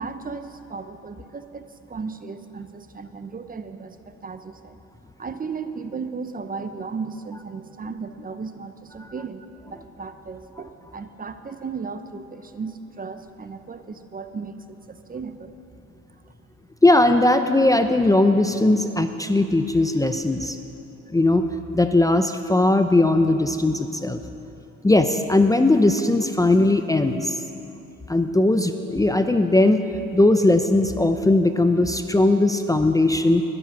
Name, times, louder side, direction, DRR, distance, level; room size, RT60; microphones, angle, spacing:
voice 1, 0.0-4.8 5.2-15.6, right 5 dB, 30° right, 10 dB, 0.6 m, -35 dB
voice 2, 16.8-20.6 21.1-21.4 21.7-24.2 24.8-27.4 28.1-29.8 30.1-33.4, left 2 dB, 10° left, 8 dB, 0.5 m, -19 dB
20.5 x 7.4 x 5.9 m, 2.8 s
cardioid pair, 90°, 30 cm